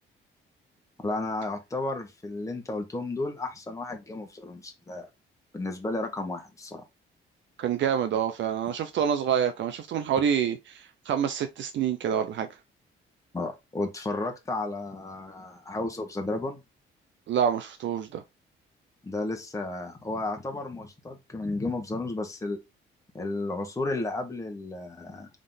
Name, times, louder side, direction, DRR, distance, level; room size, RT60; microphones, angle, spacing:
voice 1, 1.0-5.1 5.5-6.8 13.3-16.6 19.0-22.6 23.1-25.3, left 2 dB, 15° left, 1.3 m, -33 dB
voice 2, 7.6-12.5 17.3-18.2, right 8 dB, 70° right, 0.6 m, -27 dB
3.7 x 3.7 x 3.8 m
cardioid pair, 90°, 20 cm